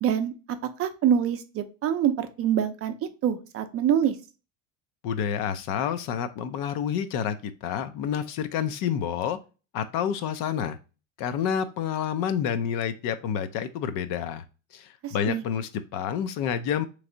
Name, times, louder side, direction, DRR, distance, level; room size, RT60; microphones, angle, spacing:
voice 1, 0.0-2.9 3.2-4.2 15.0-15.4, right 9 dB, 35° right, 8 dB, 0.5 m, -25 dB
voice 2, 5.0-9.4 9.7-10.8 11.2-14.4 14.7-16.9, left 8 dB, 55° left, 11 dB, 0.6 m, -29 dB
3.4 x 3.2 x 3.8 m, 0.33 s
supercardioid pair, 125°, 39 cm